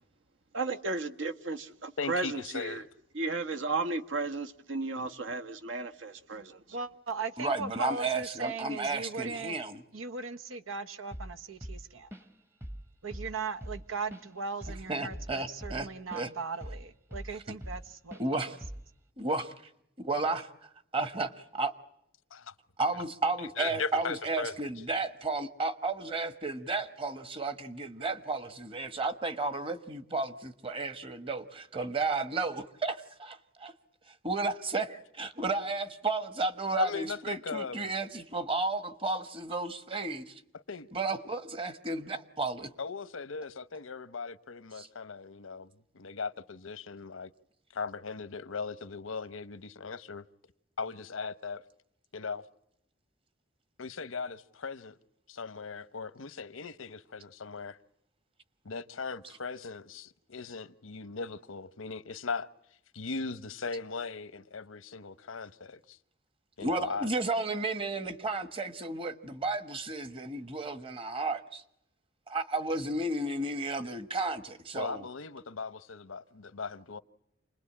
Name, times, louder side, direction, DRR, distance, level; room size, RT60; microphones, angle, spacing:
voice 1, 0.5-2.8 3.1-6.6, right 3 dB, 70° right, 1.3 m, -34 dB
voice 2, 2.0-2.9 22.3-22.5 23.6-24.6 36.8-37.9 40.5-40.9 42.8-47.3 47.7-50.3 50.8-51.6 52.1-52.5 53.8-55.0 55.3-57.8 58.6-62.5 62.9-66.0 66.6-67.1 74.7-77.0, left 4 dB, 90° left, 0.9 m, -38 dB
voice 3, 6.7-9.6 9.9-12.1 13.0-18.6, right 4 dB, 90° right, 1.2 m, -38 dB
voice 4, 7.4-9.8 14.9-16.3 18.2-18.5 19.2-19.5 20.1-20.4 20.9-21.7 22.8-33.7 34.1-40.4 40.9-42.7 44.8-44.9 66.6-71.6 72.3-75.0, right 3 dB, 25° right, 1.3 m, -33 dB
Drum kit / Drum, 11.1-11.4 11.6-12.4 12.6-12.9 13.1-16.3 16.6-17.8 18.1-18.3 18.6-18.9, equal, 10° right, 0.9 m, -42 dB
28.5 x 21.0 x 8.6 m
head